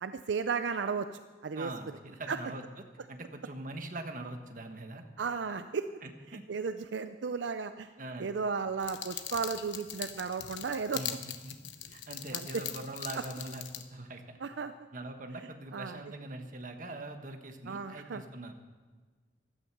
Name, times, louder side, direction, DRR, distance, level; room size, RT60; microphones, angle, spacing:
voice 1, 0.0-1.7 2.3-2.4 5.2-5.9 6.5-7.9 8.2-11.0 12.3-12.6 13.1-13.2 14.4-14.7 15.7-16.0 17.7-18.2, right 5 dB, 75° right, 10 dB, 0.5 m, -34 dB
voice 2, 1.5-2.6 3.1-5.0 6.0-6.4 8.0-8.3 10.9-11.6 11.9-14.4 14.9-18.5, right 2 dB, 45° right, 5 dB, 1.3 m, -42 dB
sound 1, 8.8-13.8, left 10 dB, 85° left, 1.0 m, -41 dB
15.0 x 12.0 x 6.0 m, 1.4 s
head